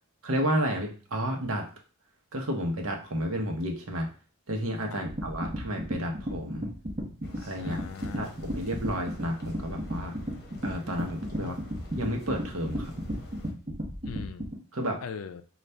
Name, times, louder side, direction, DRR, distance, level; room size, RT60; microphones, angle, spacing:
voice 1, 0.2-1.7 2.3-4.1 4.5-6.7 7.4-7.8 8.1-10.2 10.6-11.6 12.0-12.9 14.7-15.0, equal, 70° right, 2 dB, 0.9 m, -31 dB
sound 1, 5.1-14.5, equal, 35° right, 0.9 m, -34 dB
sound 2, 7.2-13.5, left 2 dB, 50° left, 0.9 m, -50 dB
voice 2, 7.6-8.4 11.4-11.6 14.0-14.5 15.0-15.4, left 6 dB, 80° left, 10 dB, 0.4 m, -40 dB
5.4 x 2.4 x 3.3 m, 0.39 s
head